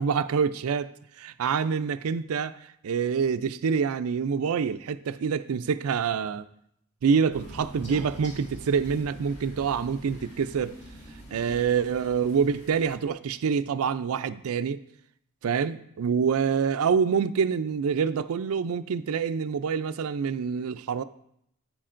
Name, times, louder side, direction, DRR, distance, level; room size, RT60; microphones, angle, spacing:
voice 1, 0.0-2.6 2.8-6.5 7.0-10.7 11.3-14.8 15.4-21.0, right 6 dB, 70° right, 0.4 m, -26 dB
Crow, 7.3-13.0, equal, 35° left, 3.2 m, -44 dB
9.9 x 9.3 x 2.5 m
head